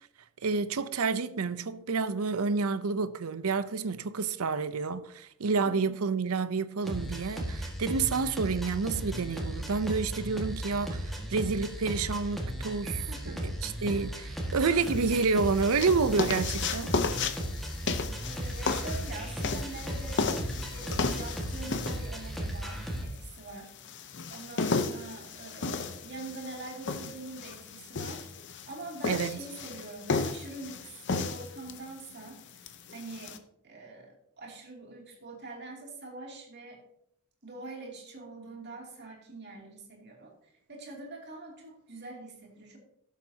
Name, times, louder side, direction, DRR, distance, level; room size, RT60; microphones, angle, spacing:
voice 1, 0.4-17.0 29.0-29.5, right 4 dB, 70° right, 0.6 m, -29 dB
voice 2, 5.6-6.0 13.1-13.4 18.3-20.3 20.7-23.7 24.3-28.3 28.7-32.4 32.9-33.4 33.6-36.8 37.4-40.3 40.7-42.8, right 2 dB, 50° right, 2.7 m, -44 dB
sound 1, 6.8-23.0, right 1 dB, ahead, 1.7 m, -36 dB
sound 2, 14.8-33.4, left 4 dB, 50° left, 0.7 m, -34 dB
16.5 x 7.3 x 2.8 m
head